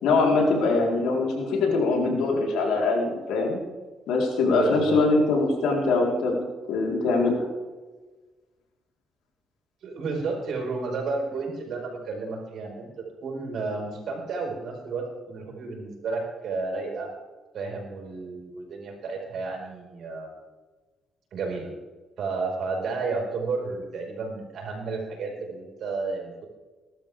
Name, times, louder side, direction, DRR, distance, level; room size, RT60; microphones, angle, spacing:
voice 1, 0.0-3.6 4.1-7.5, left 3 dB, 90° left, -1 dB, 4.1 m, -23 dB
voice 2, 4.5-5.0 9.8-17.1 17.5-20.4 21.3-21.7 22.2-26.5, right 4 dB, 70° right, 0 dB, 5.2 m, -32 dB
20.5 x 12.0 x 3.6 m, 1.3 s
cardioid pair, 90°, 0 cm